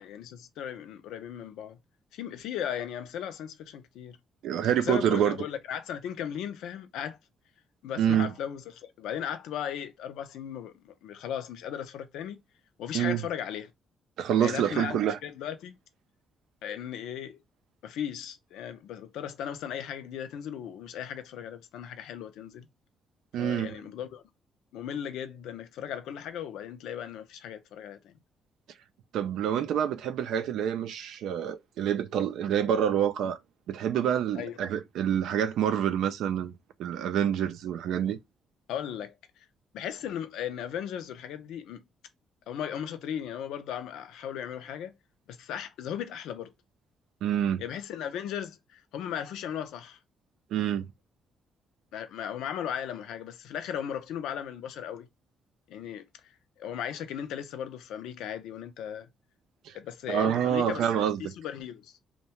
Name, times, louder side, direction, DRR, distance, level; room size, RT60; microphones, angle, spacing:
voice 1, 0.0-1.8 2.1-4.2 4.8-7.2 7.8-12.4 12.8-13.7 14.4-15.8 16.6-17.4 17.8-22.7 23.4-24.2 24.7-28.1 34.4-34.6 38.7-39.1 39.7-41.8 42.5-44.9 45.3-46.5 47.6-50.0 51.9-55.1 55.7-56.0 56.6-59.1 59.7-61.9, left 9 dB, 85° left, 0.4 m, -37 dB
voice 2, 4.4-5.4 8.0-8.3 12.9-13.2 14.2-15.2 23.3-23.8 29.1-33.4 33.7-36.5 36.8-38.2 47.2-47.6 50.5-50.9 59.7-59.8 60.1-61.3, right 9 dB, 80° right, 0.4 m, -27 dB
2.7 x 2.2 x 2.9 m
cardioid pair, 90°, 0 cm